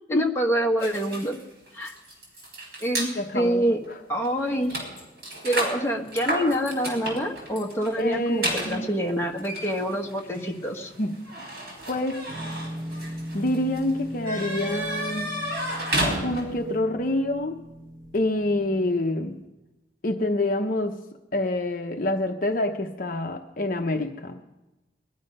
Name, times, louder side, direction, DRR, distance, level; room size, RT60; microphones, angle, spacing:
voice 1, 0.1-1.4 1.7-1.9 2.8-3.1 3.3-3.8 4.1-4.8 5.4-10.9, equal, 15° left, -1 dB, 1.4 m, -26 dB
sound 1, 0.8-3.1 3.8-4.0 4.2-16.7, right 1 dB, 60° right, 5.1 m, -33 dB
voice 2, 3.1-3.6 8.0-8.9 10.3-10.6 11.0-11.1 11.9-12.2 13.3-15.3 16.2-17.6 18.1-19.4 20.0-21.0 21.3-24.6, left 1 dB, 50° left, 4 dB, 0.8 m, -27 dB
sound 2, 12.3-19.5, equal, 20° right, 2.9 m, -39 dB
20.5 x 11.5 x 5.4 m, 1.0 s
head